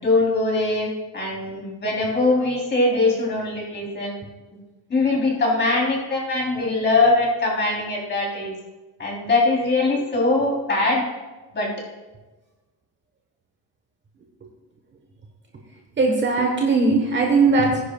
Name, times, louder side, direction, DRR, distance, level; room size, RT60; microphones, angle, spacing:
voice 1, 0.0-4.2 4.9-8.5 9.0-11.1 11.5-11.8, left 2 dB, 25° left, -3 dB, 3.4 m, -22 dB
voice 2, 16.0-17.8, right 3 dB, 25° right, 1 dB, 1.2 m, -19 dB
19.5 x 10.5 x 2.3 m, 1.2 s
cardioid pair, 165°, 44 cm